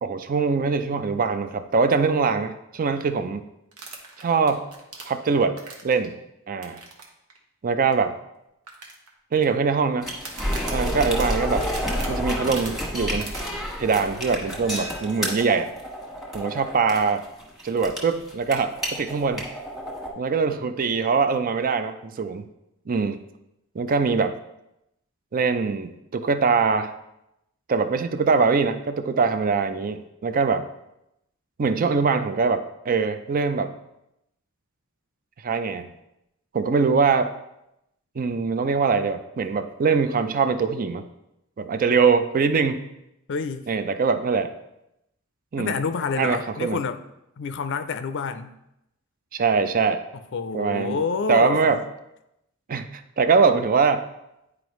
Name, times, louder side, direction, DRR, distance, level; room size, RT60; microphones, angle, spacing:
voice 1, 0.0-3.4 4.2-4.6 5.0-5.6 5.8-6.2 6.5-6.8 7.6-8.1 9.3-10.1 10.7-11.7 12.1-13.3 13.8-15.7 16.3-17.3 17.6-19.5 20.2-22.4 22.9-23.3 23.7-24.4 25.3-26.9 27.7-30.6 31.6-33.7 35.4-35.9 36.5-37.3 38.2-41.0 41.6-42.8 43.7-44.5 45.5-45.7 46.2-46.8 49.3-50.0 50.5-51.0 51.3-51.8 52.7-52.9 53.2-54.0, right 5 dB, 40° right, 10 dB, 0.4 m, -22 dB
sound 1, 3.7-6.1 6.6-7.0 7.3-7.4 7.9-8.0 8.7-9.4 10.2-12.7 13.2-13.4, right 4 dB, 85° right, 1.2 m, -40 dB
sound 2, 10.0-20.1, equal, ahead, 1.4 m, -30 dB
voice 2, 43.3-43.7 45.6-47.0 47.4-48.5 50.3-51.8, left 5 dB, 55° left, 11 dB, 0.5 m, -28 dB
9.6 x 4.7 x 3.1 m, 0.85 s
head